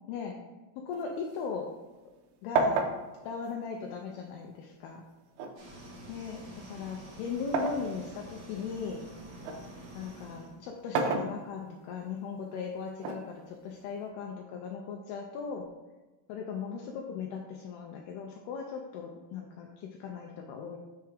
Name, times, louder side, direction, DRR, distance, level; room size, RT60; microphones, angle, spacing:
voice 1, 0.1-0.4 0.9-1.7 2.4-2.9 3.2-5.0 6.1-9.0 9.9-15.7 16.3-20.8, left 5 dB, 90° left, 1 dB, 2.2 m, -38 dB
sound 1, 0.9-2.2 2.5-4.5 5.4-7.9 8.4-9.7 10.7-11.9 13.0-14.0, right 3 dB, 80° right, 2.4 m, -33 dB
sound 2, 5.6-10.5, right 1 dB, 55° right, 1.7 m, -48 dB
6.6 x 3.4 x 4.9 m, 1.2 s
omnidirectional pair, 5.2 m